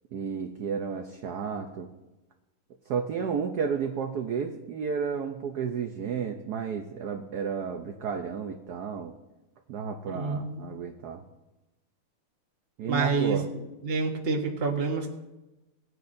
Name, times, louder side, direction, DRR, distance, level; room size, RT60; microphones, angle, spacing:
voice 1, 0.1-1.9 2.9-9.1 9.7-11.2 12.8-13.4, right 6 dB, 65° right, 4 dB, 1.0 m, -32 dB
voice 2, 10.1-10.7 12.9-13.4 13.8-15.1, right 4 dB, 35° right, 2 dB, 1.2 m, -28 dB
18.5 x 9.3 x 2.6 m, 1.0 s
omnidirectional pair, 2.4 m